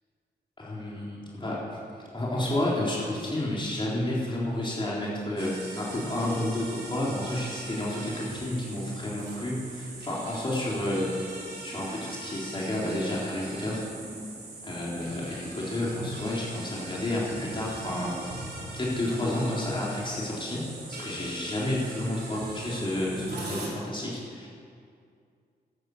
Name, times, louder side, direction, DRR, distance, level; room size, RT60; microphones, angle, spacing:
voice 1, 0.6-1.8 2.1-11.1 11.6-13.9 14.6-18.3 18.7-20.7 21.0-24.5, left 1 dB, 30° left, -6 dB, 3.8 m, -30 dB
sound 1, 5.4-23.7, right 2 dB, 80° right, 3.9 m, -41 dB
12.5 x 11.5 x 8.0 m, 2.3 s
cardioid pair, 80°, 17 cm